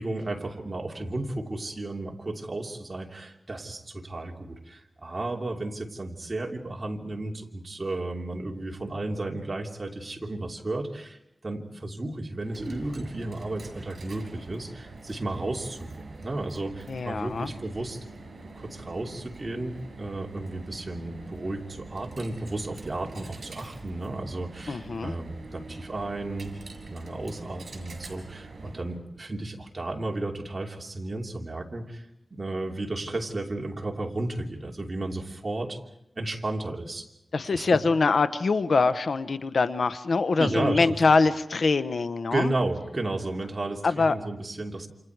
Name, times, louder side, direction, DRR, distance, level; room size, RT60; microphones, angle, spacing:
voice 1, 0.0-18.0 18.5-26.5 26.9-32.0 32.3-35.8 36.1-37.1 37.5-37.8 40.4-41.0 42.3-44.9, right 2 dB, 35° right, 1 dB, 2.9 m, -33 dB
Coin (dropping), 12.3-29.0, right 3 dB, 70° right, 6.0 m, -45 dB
voice 2, 16.9-17.5 24.7-25.1 37.3-42.5 43.8-44.1, left 4 dB, 70° left, 12 dB, 0.9 m, -24 dB
28.5 x 28.0 x 4.7 m, 0.77 s
wide cardioid pair, 110°, 0 cm